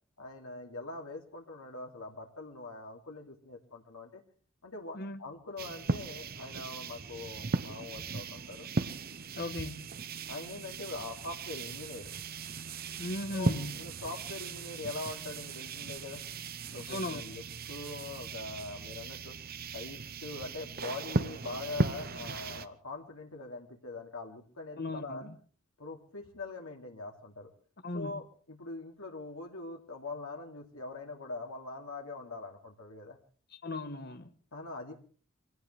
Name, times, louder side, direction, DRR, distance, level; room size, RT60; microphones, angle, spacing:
voice 1, 0.2-4.2 4.6-8.7 10.3-12.1 13.3-16.2 16.7-19.3 19.7-25.3 25.8-27.5 27.9-33.2 34.5-34.9, left 3 dB, 80° left, 2.8 m, -43 dB
sound 1, 5.6-22.7, right 3 dB, 45° right, 0.8 m, -37 dB
voice 2, 9.4-9.9 13.0-13.8 16.9-17.4 24.8-25.4 27.8-28.2 33.6-34.3, left 2 dB, 45° left, 1.2 m, -37 dB
24.5 x 17.5 x 3.4 m
head